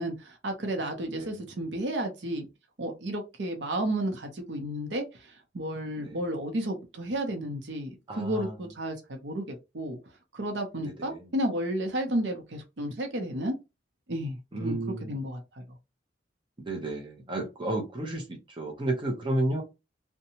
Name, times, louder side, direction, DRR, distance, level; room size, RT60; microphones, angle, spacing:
voice 1, 0.0-2.5 2.8-5.0 5.5-10.0 10.3-13.6 14.1-14.8 15.1-15.6, right 1 dB, 75° right, 0.7 m, -32 dB
voice 2, 1.1-1.4 6.0-6.2 8.1-8.5 11.0-11.2 14.5-15.2 16.7-19.6, right 1 dB, 30° right, 0.7 m, -32 dB
2.7 x 2.2 x 2.8 m
head